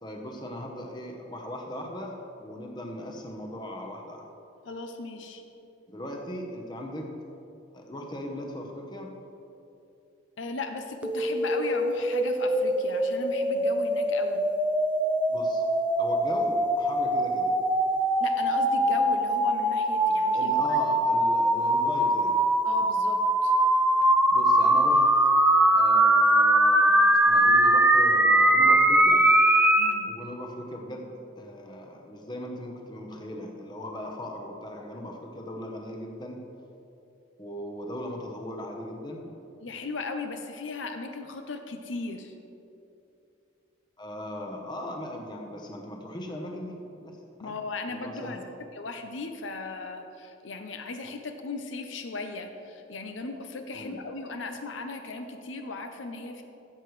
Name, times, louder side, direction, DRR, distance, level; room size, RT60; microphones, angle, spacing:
voice 1, 0.0-4.3 5.9-7.1 7.7-9.1 15.3-15.6 16.0-17.5 20.3-22.4 24.3-25.0 25.7-29.3 30.1-36.4 37.4-39.2 44.0-47.2 47.4-47.5 47.9-48.5 53.7-54.0, left 1 dB, 25° left, 1 dB, 0.9 m, -38 dB
voice 2, 4.6-5.4 10.4-14.4 18.2-20.8 22.6-23.5 29.8-30.1 39.6-42.3 47.4-48.4 48.7-56.4, left 3 dB, 80° left, 6 dB, 0.7 m, -37 dB
sound 1, 11.0-29.9, right 1 dB, 5° right, 0.4 m, -22 dB
13.0 x 7.8 x 3.2 m, 2.8 s
head